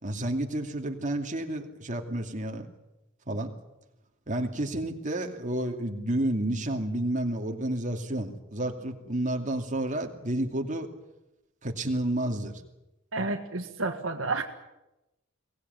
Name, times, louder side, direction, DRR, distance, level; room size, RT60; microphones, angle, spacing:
voice 1, 0.0-2.7 3.3-3.5 4.3-10.9 11.6-12.6, right 1 dB, 40° right, 4 dB, 2.5 m, -30 dB
voice 2, 13.1-14.4, right 3 dB, 70° right, 5 dB, 1.7 m, -30 dB
23.0 x 18.5 x 9.4 m, 0.96 s
head